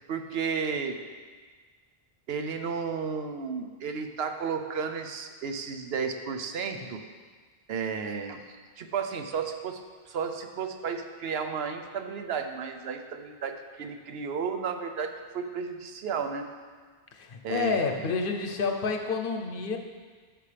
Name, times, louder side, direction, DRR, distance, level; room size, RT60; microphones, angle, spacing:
voice 1, 0.1-1.0 2.3-7.0 7.7-9.8 10.1-16.5 17.4-17.8, right 6 dB, 80° right, 6 dB, 0.9 m, -33 dB
voice 2, 17.1-19.8, left 4 dB, 60° left, 4 dB, 0.9 m, -29 dB
12.5 x 5.3 x 3.3 m, 1.5 s
omnidirectional pair, 1.0 m